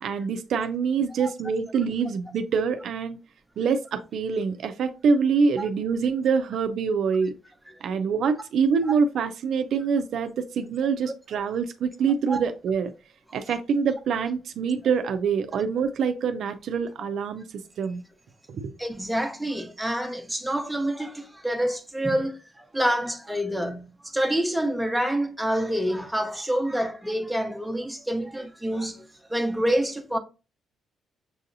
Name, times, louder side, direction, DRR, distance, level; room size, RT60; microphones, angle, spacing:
voice 1, 0.0-3.2 3.6-7.3 7.8-12.9 13.3-17.4 17.8-18.0 18.5-18.7, right 5 dB, 70° right, 0.4 m, -25 dB
voice 2, 18.8-30.2, right 1 dB, 5° right, 0.8 m, -27 dB
6.2 x 2.7 x 2.6 m
cardioid pair, 90°, 0 cm